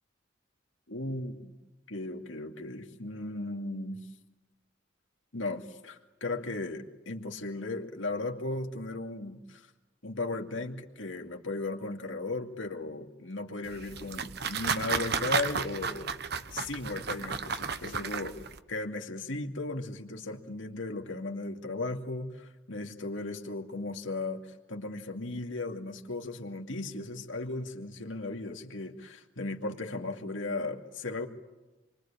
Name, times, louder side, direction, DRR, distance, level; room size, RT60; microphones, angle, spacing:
voice 1, 0.9-1.5 1.9-4.0 5.3-9.7 10.0-16.1 16.5-18.4 18.7-31.3, left 2 dB, 85° left, 4 dB, 2.4 m, -36 dB
sound 1, 13.7-18.6, right 5 dB, 55° right, 1.1 m, -33 dB
28.5 x 23.5 x 8.7 m, 1.1 s
head